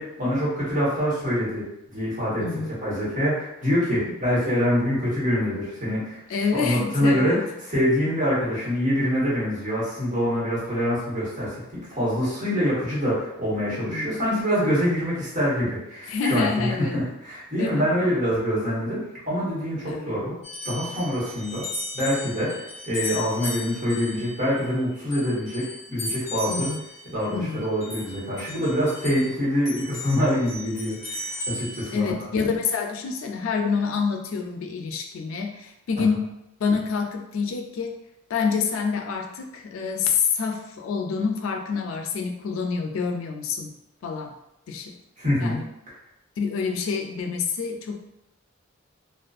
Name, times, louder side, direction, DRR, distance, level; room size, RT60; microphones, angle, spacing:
voice 1, 0.0-2.5 2.8-6.2 6.5-7.3 7.7-11.6 11.9-20.3 20.6-21.7 21.9-26.7 27.1-32.1 36.0-36.1 45.2-45.6, equal, 40° right, -8 dB, 1.1 m, -25 dB
voice 2, 2.4-2.7 4.0-4.1 6.3-7.4 12.5-12.7 13.9-14.2 16.1-17.0 17.6-17.7 19.8-20.1 26.5-26.8 27.3-27.6 31.9-36.3 36.6-37.9 38.3-43.7 44.0-44.3 44.7-44.9 45.4-45.6 46.4-48.0, left 5 dB, 90° left, 4 dB, 0.4 m, -27 dB
sound 1, 20.4-29.3 29.6-31.9, left 2 dB, 40° left, 1.2 m, -36 dB
2.5 x 2.3 x 2.3 m, 0.85 s
head